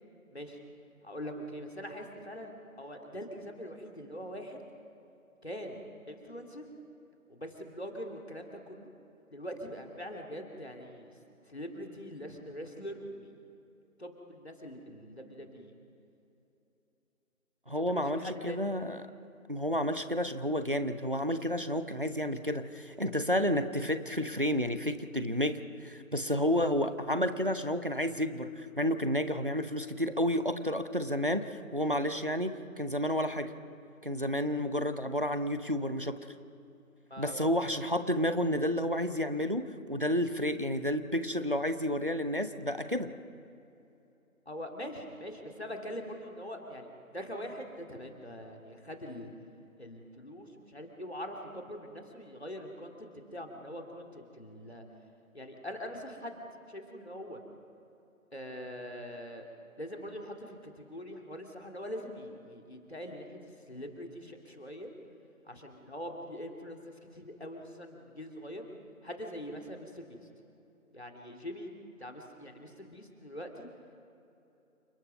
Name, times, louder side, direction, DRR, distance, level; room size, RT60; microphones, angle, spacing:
voice 1, 1.0-2.5 2.8-4.6 5.4-5.8 6.1-6.7 7.3-8.9 9.3-11.2 11.4-13.4 14.0-15.7 17.7-18.6 37.1-37.9 44.5-49.3 49.8-54.8 55.3-56.4 56.7-57.4 58.3-59.5 59.8-64.9 65.4-68.6 69.0-70.3 70.9-71.7 72.0-73.7, equal, 50° left, 2 dB, 2.7 m, -43 dB
voice 2, 17.7-19.0 19.5-33.5 34.0-36.2 37.2-43.1, equal, 40° right, 10 dB, 0.9 m, -31 dB
29.0 x 19.5 x 5.4 m, 2.9 s
figure-of-eight pair, 175°, 42 cm